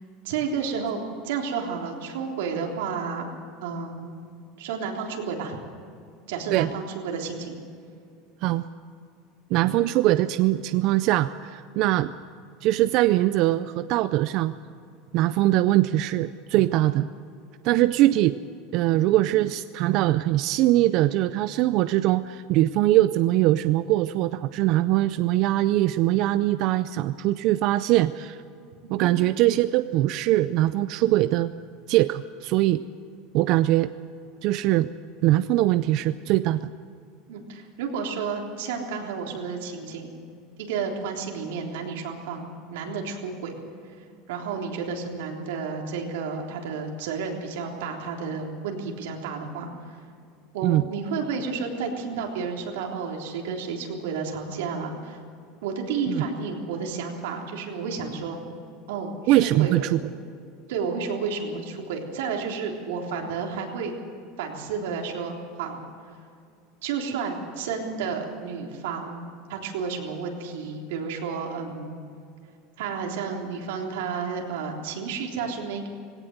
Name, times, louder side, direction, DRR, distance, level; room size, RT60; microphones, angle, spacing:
voice 1, 0.2-3.3 3.6-4.1 4.6-5.6 6.3-7.6 28.8-29.1 37.3-40.1 40.6-43.5 44.3-49.7 50.5-55.2 55.6-58.4 58.9-59.8 60.7-63.9 64.4-65.8 66.8-69.2 69.5-71.9 72.8-75.9, right 5 dB, 90° right, 1 dB, 3.6 m, -31 dB
voice 2, 9.5-12.1 12.6-14.5 15.1-17.1 17.6-18.4 18.7-28.4 28.9-31.5 31.9-32.8 33.3-33.9 34.4-34.9 35.2-36.7 50.6-50.8 56.1-56.2 59.3-60.0, right 15 dB, 45° right, 13 dB, 0.4 m, -22 dB
19.5 x 17.5 x 8.0 m, 2.3 s
supercardioid pair, 175°, 0 cm